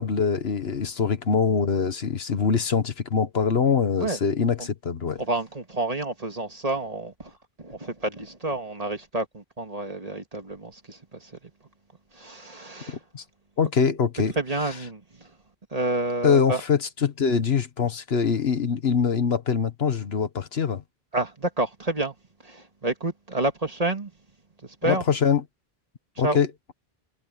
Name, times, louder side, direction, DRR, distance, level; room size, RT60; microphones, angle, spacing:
voice 1, 0.0-5.2 12.9-13.2 13.6-14.3 16.2-20.8 24.8-25.4 26.2-26.5, left 6 dB, 80° left, 1.5 m, -23 dB
voice 2, 5.2-11.4 12.1-13.0 14.4-15.3 15.7-16.6 21.1-22.1 22.4-24.1 24.6-25.0 26.2-26.4, right 2 dB, 40° right, 2.0 m, -29 dB
omnidirectional pair, 1.0 m